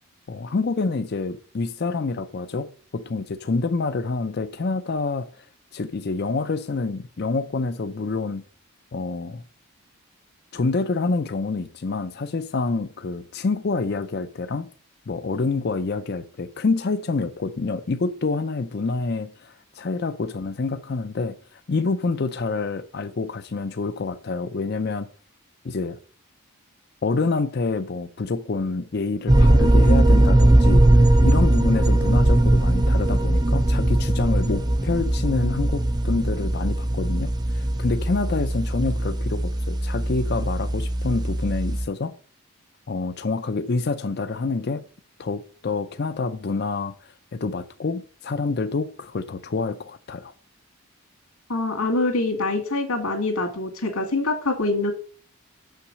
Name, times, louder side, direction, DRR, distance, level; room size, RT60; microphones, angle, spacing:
voice 1, 0.3-5.5 5.7-8.4 8.9-9.4 10.5-14.7 15.1-25.1 25.6-26.0 27.0-42.1 42.9-44.8 45.2-50.3, left 3 dB, 45° left, 0.5 m, -27 dB
sound 1, 29.3-41.9, right 1 dB, 20° right, 0.5 m, -19 dB
voice 2, 51.5-54.9, left 2 dB, 85° left, 2.3 m, -24 dB
7.2 x 5.8 x 6.2 m
head